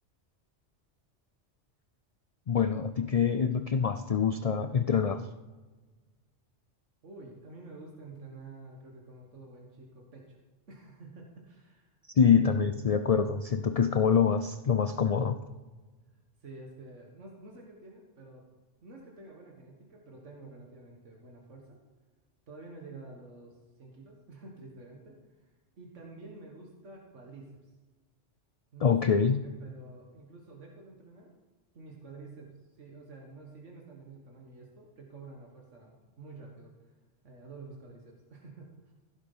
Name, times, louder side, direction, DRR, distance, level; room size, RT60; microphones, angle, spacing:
voice 1, 2.5-5.2 12.2-15.4 28.8-29.4, left 7 dB, 60° left, 10 dB, 0.4 m, -25 dB
voice 2, 7.0-10.4 10.7-13.0 16.4-18.4 18.8-21.8 22.5-27.7 28.7-31.3 31.7-36.7 37.2-38.9, right 3 dB, 85° right, -1 dB, 2.0 m, -49 dB
15.5 x 7.4 x 5.5 m, 1.2 s
omnidirectional pair, 1.2 m